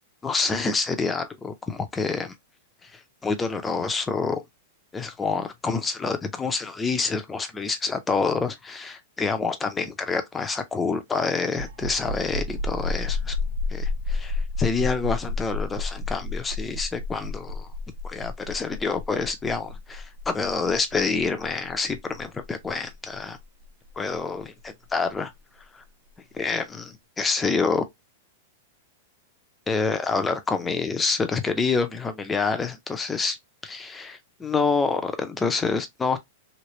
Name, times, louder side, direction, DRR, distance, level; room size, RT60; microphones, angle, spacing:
voice 1, 0.2-2.3 2.8-4.4 4.9-13.4 13.7-17.7 18.0-23.4 24.0-25.3 25.7-25.8 26.3-27.8 29.7-33.4 33.6-36.2, left 4 dB, 10° left, 0.5 m, -27 dB
sound 1, 11.5-24.9, left 3 dB, 75° right, 1.2 m, -31 dB
3.1 x 2.8 x 2.9 m
supercardioid pair, 160°, 0 cm